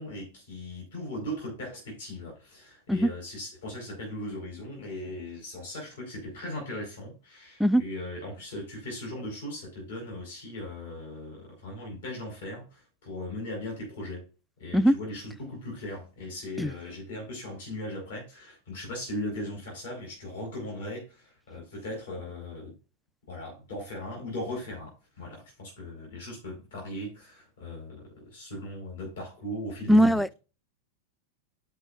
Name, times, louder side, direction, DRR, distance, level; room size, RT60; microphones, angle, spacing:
voice 1, 0.0-14.2 14.6-22.7 23.3-30.3, left 1 dB, 65° left, 4.0 m, -38 dB
voice 2, 29.9-30.3, equal, ahead, 0.3 m, -20 dB
12.0 x 5.2 x 2.5 m
figure-of-eight pair, 90°, 0 cm